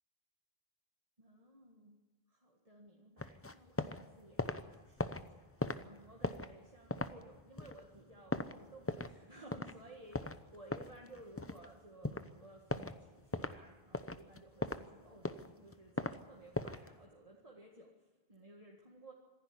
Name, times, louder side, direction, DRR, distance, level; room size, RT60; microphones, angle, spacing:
voice 1, 1.2-2.0 2.3-19.1, right 1 dB, 35° right, -1 dB, 2.0 m, -57 dB
sound 1, 3.2-4.0 4.3-9.2 9.5-9.7 10.1-11.7 12.0-12.3 12.7-13.0 13.3-13.6 13.9-14.9 15.2-16.2 16.5-16.9, left 2 dB, 15° left, 0.7 m, -39 dB
26.0 x 10.5 x 9.8 m, 1.4 s
omnidirectional pair, 1.0 m